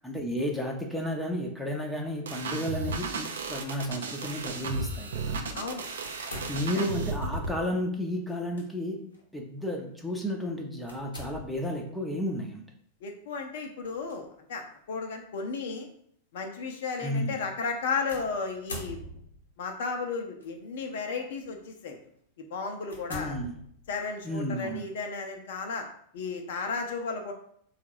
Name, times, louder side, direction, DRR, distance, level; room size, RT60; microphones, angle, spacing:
voice 1, 0.0-5.4 6.5-9.0 9.3-12.6 17.0-17.4 23.1-23.5 24.2-24.9, left 1 dB, ahead, 0 dB, 0.7 m, -32 dB
sound 1, 2.3-7.6, right 3 dB, 65° right, 0.5 m, -34 dB
sound 2, 6.0-7.0 8.3-8.7 9.1-9.2 10.9-11.8 13.8-14.1 15.0-15.1 18.1-19.5 20.4-20.8 21.4-21.6 22.2-22.3 22.9-24.1, left 1 dB, 75° left, 1.0 m, -43 dB
voice 2, 13.0-15.9 16.3-19.0 19.6-22.0 22.5-23.4 23.9-25.9 26.1-27.3, left 4 dB, 55° left, 3 dB, 0.6 m, -34 dB
3.7 x 2.4 x 4.5 m, 0.64 s
figure-of-eight pair, 90°, 0 cm